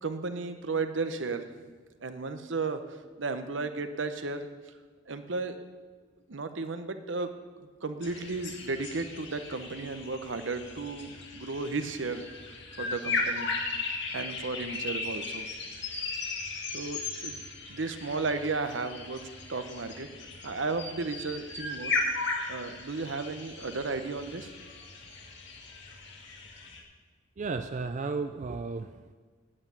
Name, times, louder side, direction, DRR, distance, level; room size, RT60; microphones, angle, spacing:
voice 1, 0.0-1.5 2.0-4.5 5.1-5.6 6.3-7.3 7.6-12.3 12.8-13.5 14.1-15.5 16.7-17.4 17.7-19.2 19.5-20.1 20.4-21.9 22.5-24.5, right 3 dB, 70° right, 9 dB, 0.9 m, -34 dB
sound 1, 8.0-26.8, left 3 dB, 65° left, 2.1 m, -37 dB
voice 2, 27.4-29.1, right 4 dB, 40° right, 8 dB, 0.4 m, -34 dB
8.9 x 8.8 x 8.3 m, 1.4 s
head